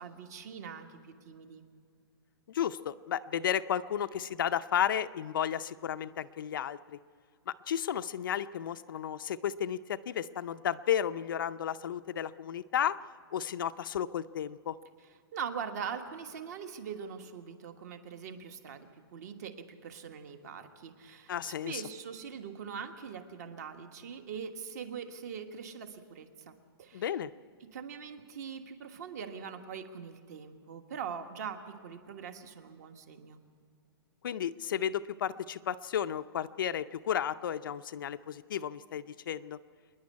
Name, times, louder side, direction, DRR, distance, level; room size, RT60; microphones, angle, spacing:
voice 1, 0.0-1.6 15.3-27.0 27.7-33.4, right 7 dB, 40° right, 7 dB, 1.5 m, -42 dB
voice 2, 2.5-7.0 7.5-13.0 13.3-14.7 21.3-21.8 26.9-27.3 34.2-39.6, left 9 dB, 55° left, 11 dB, 0.5 m, -33 dB
26.0 x 10.5 x 9.6 m, 2.3 s
hypercardioid pair, 175°, 13 cm